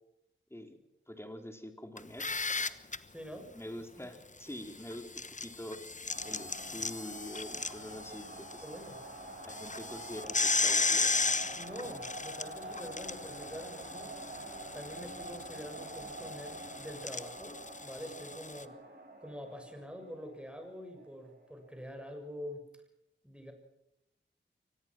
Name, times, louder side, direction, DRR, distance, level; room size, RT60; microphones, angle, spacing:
voice 1, 1.1-2.3 2.6-2.8 3.5-5.8 6.2-8.6 9.4-11.2, left 1 dB, 10° left, 5 dB, 4.0 m, -45 dB
sound 1, 2.0-3.0 4.9-8.5 8.9-9.0 9.4-18.6, left 3 dB, 40° left, 1.1 m, -35 dB
voice 2, 3.1-3.5 8.6-9.0 11.6-14.1 14.7-18.8 19.2-22.6 23.2-23.5, equal, 5° right, 5 dB, 6.8 m, -45 dB
sound 2, 6.1-21.9, right 2 dB, 50° right, 6.5 m, -47 dB
23.5 x 19.5 x 6.2 m, 0.86 s
cardioid pair, 45°, 21 cm